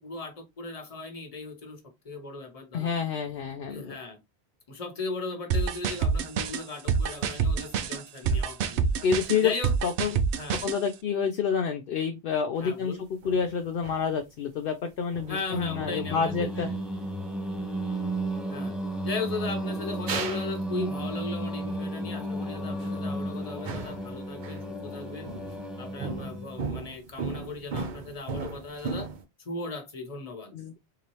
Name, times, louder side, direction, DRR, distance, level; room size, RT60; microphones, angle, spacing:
voice 1, 0.0-2.9 3.6-4.2 4.7-8.9 9.4-9.7 10.4-10.7 12.6-13.0 15.3-16.7 18.5-18.7 19.0-25.3 25.8-29.1 29.4-30.5, left 3 dB, 35° left, 0.9 m, -37 dB
voice 2, 2.7-4.0 9.0-9.5 9.8-10.2 10.6-13.0 13.2-16.7 30.5-30.7, left 6 dB, 60° left, 0.7 m, -28 dB
sound 1, 5.5-10.8, right 6 dB, 80° right, 0.9 m, -27 dB
sound 2, 12.6-12.7 13.2-14.2 14.9-15.5 16.5-16.7 17.0-17.2 17.5-17.9 18.8-19.0 19.5-19.6 20.1-20.6 20.8-21.1 22.6-23.1 23.6-24.6 25.3-25.7 26.0-29.2, right 4 dB, 50° right, 0.7 m, -37 dB
Singing, 15.5-26.7, right 1 dB, ahead, 0.6 m, -33 dB
3.7 x 2.9 x 3.0 m
omnidirectional pair, 1.1 m